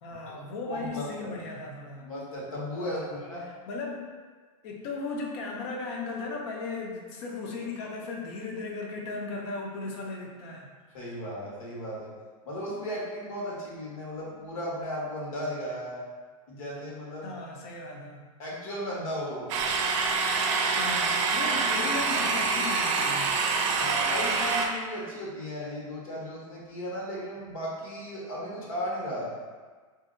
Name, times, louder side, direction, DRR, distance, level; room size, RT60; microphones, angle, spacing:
voice 1, 0.0-2.1 2.8-3.2 3.5-4.1 4.6-10.7 17.2-18.3 20.5-23.4, left 3 dB, 50° left, 0 dB, 0.7 m, -37 dB
voice 2, 0.6-1.3 2.0-3.5 10.9-12.1 12.4-16.0 16.5-17.4 18.4-19.6 23.8-29.3, equal, 75° left, -5 dB, 1.4 m, -35 dB
sound 1, 19.5-24.7, right 4 dB, 60° right, 0.5 m, -26 dB
3.0 x 2.7 x 3.7 m, 1.4 s
supercardioid pair, 155°, 18 cm